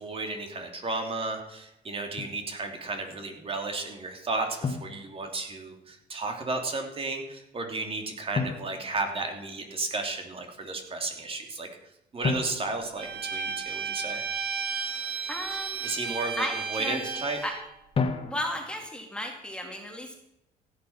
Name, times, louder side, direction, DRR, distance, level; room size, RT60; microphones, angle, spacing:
voice 1, 0.0-11.7 12.1-14.2 15.8-17.4, right 3 dB, 35° right, 3 dB, 2.9 m, -33 dB
Drum, 2.2-2.5 4.6-5.8 8.3-9.8 12.2-13.9 17.9-18.9, left 4 dB, 35° left, 1.8 m, -33 dB
Bowed string instrument, 13.0-17.6, right 5 dB, 70° right, 2.5 m, -33 dB
voice 2, 15.3-15.8 16.4-17.6 18.2-20.1, left 1 dB, 5° left, 2 dB, 2.2 m, -35 dB
16.0 x 8.7 x 5.9 m, 0.84 s
cardioid pair, 110°, 17 cm